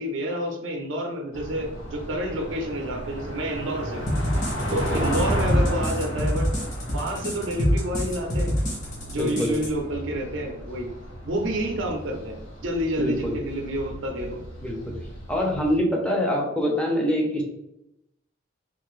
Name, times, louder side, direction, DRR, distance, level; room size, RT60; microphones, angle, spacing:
voice 1, 0.0-4.1 4.7-6.5 6.9-8.6 9.1-10.9 11.2-12.4 12.6-14.4, equal, 65° right, 2 dB, 0.6 m, -29 dB
sound 1, 1.3-15.8, equal, 85° left, 1.2 m, -33 dB
sound 2, 4.1-9.7, equal, 40° left, 0.9 m, -26 dB
voice 2, 4.7-5.1 9.1-9.7 13.0-13.4 14.6-14.9 15.3-17.4, equal, 5° left, -1 dB, 0.5 m, -25 dB
2.6 x 2.4 x 3.1 m, 0.84 s
head